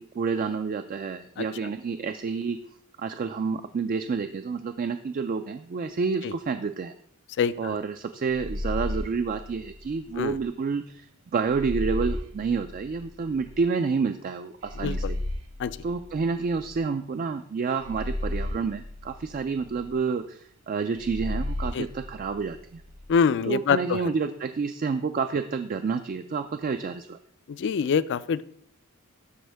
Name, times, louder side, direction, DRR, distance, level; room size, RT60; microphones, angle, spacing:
voice 1, 0.0-2.6 3.0-6.9 7.6-15.2 15.8-22.8 23.5-27.2, right 5 dB, 40° right, 8 dB, 0.3 m, -29 dB
voice 2, 7.4-7.8 10.2-10.4 14.8-15.1 15.6-15.8 21.7-21.9 23.1-24.1 27.5-28.4, left 6 dB, 55° left, 16 dB, 0.3 m, -25 dB
sound 1, 8.3-10.4 11.5-13.6 14.6-17.0 17.8-20.0 21.0-23.1, left 1 dB, 90° right, 1.2 m, -34 dB
12.5 x 4.4 x 3.4 m, 0.63 s
head